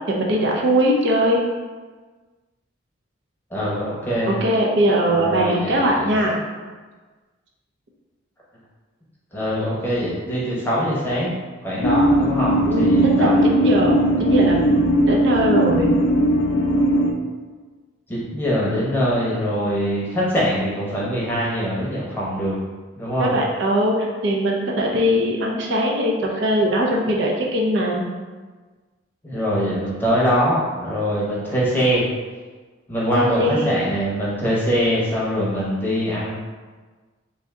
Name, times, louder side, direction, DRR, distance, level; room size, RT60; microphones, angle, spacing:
voice 1, 0.1-1.4 4.2-6.4 12.6-15.9 23.2-28.0 33.1-33.7, equal, 60° right, -1 dB, 0.5 m, -21 dB
voice 2, 3.5-4.3 5.1-6.1 9.3-11.3 11.6-13.6 18.1-22.6 22.9-23.3 29.2-32.0 32.9-36.3, equal, 10° left, -7 dB, 0.8 m, -23 dB
sound 1, 11.8-17.1, equal, 85° left, 0.4 m, -18 dB
3.3 x 2.6 x 3.6 m, 1.4 s
head